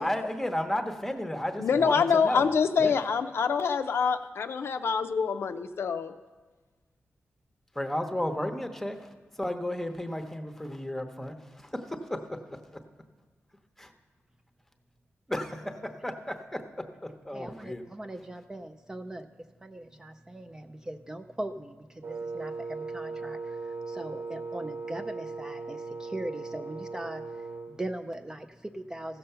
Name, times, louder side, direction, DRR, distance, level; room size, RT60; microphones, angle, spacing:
voice 1, 0.0-2.5 2.8-2.9 7.7-12.8 13.8-13.9 15.3-17.8, left 1 dB, 5° left, 6 dB, 0.8 m, -34 dB
voice 2, 1.6-6.1, left 6 dB, 65° left, 8 dB, 0.5 m, -26 dB
voice 3, 17.3-19.3 19.6-29.2, right 1 dB, 15° right, 8 dB, 0.3 m, -40 dB
Wind instrument woodwind instrument, 22.0-27.8, right 4 dB, 60° right, 1.1 m, -38 dB
15.5 x 6.8 x 5.5 m, 1.3 s
wide cardioid pair, 165°, 5 cm